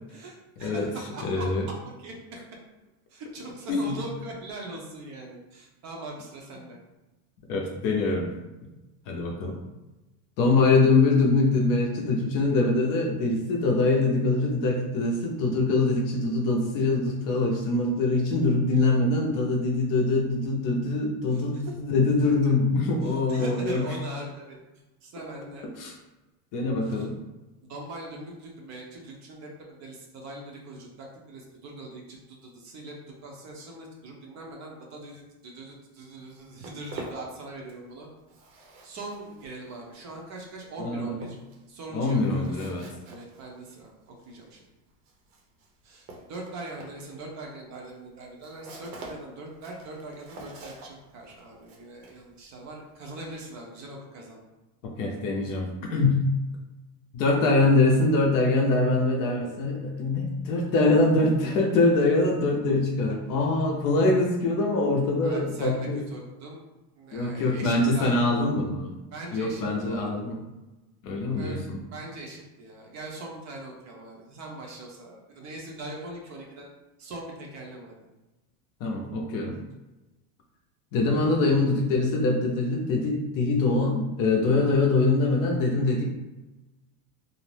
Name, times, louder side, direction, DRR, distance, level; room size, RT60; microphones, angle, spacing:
voice 1, 0.1-2.4 3.1-6.8 21.3-21.7 23.0-24.6 25.0-25.7 26.8-27.1 27.6-38.1 38.8-41.4 41.7-42.7 43.1-44.6 45.8-54.4 65.2-66.6 67.0-68.3 69.1-70.1 71.4-76.7 77.0-78.0, right 2 dB, 35° right, 0 dB, 0.6 m, -41 dB
voice 2, 1.2-1.6 3.7-3.9 7.5-8.3 9.1-9.6 10.4-23.8 25.8-25.9 26.5-27.1 40.8-41.2 41.9-42.8 54.8-56.2 57.1-66.0 67.1-68.9 69.3-70.4 71.0-71.6 78.8-79.5 80.9-86.0, left 3 dB, 45° left, 0 dB, 0.6 m, -24 dB
Walk footsteps, 36.2-37.9 38.2-53.6, right 2 dB, 75° right, 0.9 m, -47 dB
2.5 x 2.0 x 3.2 m, 1.1 s
supercardioid pair, 130°, 48 cm